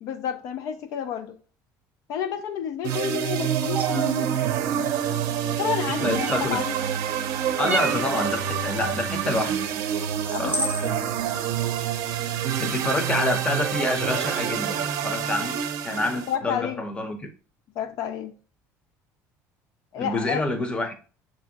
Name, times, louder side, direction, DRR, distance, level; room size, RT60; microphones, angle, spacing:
voice 1, 0.0-1.4 2.1-4.4 5.5-6.7 10.3-11.2 16.3-16.8 17.8-18.4 19.9-20.4, left 8 dB, 60° left, 0.4 m, -30 dB
sound 1, 2.8-16.3, right 9 dB, 60° right, 0.5 m, -27 dB
sound 2, 3.7-4.1 6.1-6.6 7.6-8.1 9.8-9.9 10.5-10.9, right 2 dB, 25° right, 0.7 m, -29 dB
voice 2, 6.0-6.6 7.6-9.6 10.4-10.6 12.6-17.3 20.0-20.9, left 2 dB, 15° left, 0.7 m, -27 dB
6.5 x 2.7 x 2.8 m
cardioid pair, 145°, 7 cm